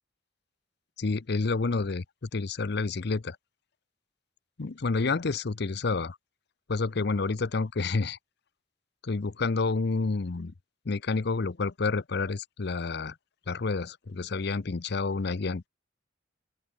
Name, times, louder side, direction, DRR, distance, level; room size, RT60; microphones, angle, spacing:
voice 1, 1.0-3.4 4.6-6.2 6.7-8.2 9.0-10.5 10.9-13.1 13.5-15.7, left 3 dB, 60° left, 0.7 m, -29 dB
open air
head